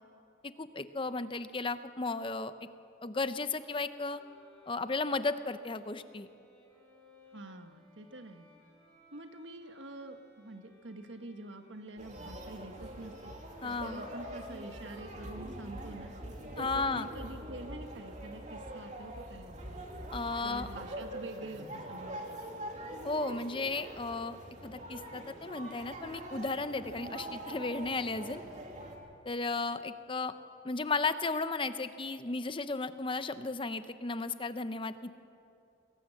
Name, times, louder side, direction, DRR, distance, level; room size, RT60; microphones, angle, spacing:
voice 1, 0.6-2.5 3.0-4.2 4.7-6.3 13.6-14.0 16.6-17.1 20.1-20.7 23.0-24.4 24.6-28.4 29.2-30.3 30.6-35.2, left 3 dB, 30° left, 12 dB, 0.7 m, -34 dB
Bowed string instrument, 3.8-18.4, left 1 dB, 5° left, 6.1 m, -63 dB
voice 2, 7.3-8.5 9.1-13.3 13.6-16.1 16.6-20.0 20.4-22.6, right 2 dB, 85° right, 7 dB, 1.5 m, -47 dB
sound 1, 12.0-29.0, right 1 dB, 40° right, 2.5 m, -44 dB
22.0 x 18.0 x 7.7 m, 2.6 s
head